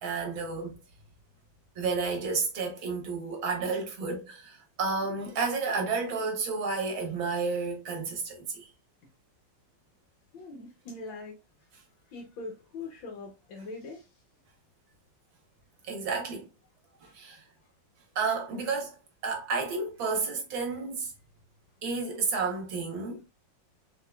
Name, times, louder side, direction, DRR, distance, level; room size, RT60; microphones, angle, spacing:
voice 1, 0.0-0.8 1.8-8.7 15.8-16.5 17.0-17.4 18.2-19.0 19.2-21.1 21.8-23.2, right 4 dB, 90° right, 2.1 m, -31 dB
voice 2, 10.3-11.4 12.1-14.1 17.0-17.2, left 3 dB, 80° left, 1.7 m, -42 dB
4.7 x 4.0 x 2.3 m
omnidirectional pair, 2.1 m